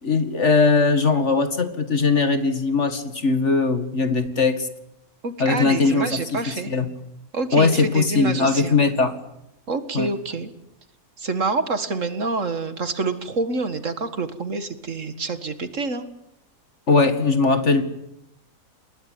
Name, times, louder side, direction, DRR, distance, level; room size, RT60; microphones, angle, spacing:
voice 1, 0.0-4.6 5.4-6.4 6.7-6.9 7.5-9.1 9.9-10.1 16.9-17.8, left 4 dB, 50° left, 10 dB, 2.3 m, -20 dB
voice 2, 5.2-6.7 7.3-8.8 9.7-10.5 11.2-16.1, right 3 dB, 55° right, 11 dB, 2.1 m, -27 dB
28.5 x 21.0 x 9.4 m, 0.82 s
omnidirectional pair, 1.6 m